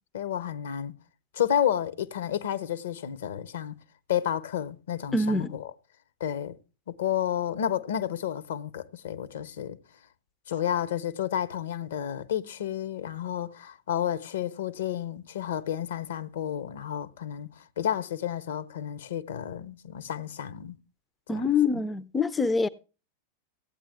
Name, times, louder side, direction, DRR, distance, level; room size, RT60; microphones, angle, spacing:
voice 1, 0.1-1.0 1.3-3.7 4.1-5.7 6.2-6.6 6.9-9.8 10.5-20.8 21.3-21.5, left 10 dB, 60° left, 0.7 m, -31 dB
voice 2, 5.1-5.5 21.3-22.7, left 4 dB, 15° left, 0.4 m, -25 dB
15.0 x 8.7 x 3.4 m
figure-of-eight pair, 90°, 0 cm